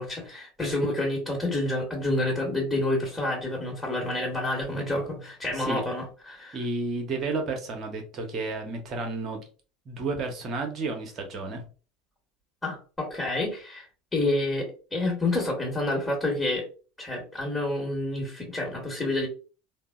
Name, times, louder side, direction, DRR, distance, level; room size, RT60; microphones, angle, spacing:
voice 1, 0.0-6.6 12.6-13.9 14.1-16.6 17.0-19.3, left 2 dB, 15° left, -3 dB, 1.2 m, -28 dB
voice 2, 6.5-9.4 9.9-11.6, right 3 dB, 35° right, 3 dB, 1.0 m, -31 dB
3.7 x 2.1 x 2.4 m, 0.36 s
figure-of-eight pair, 75°, 0 cm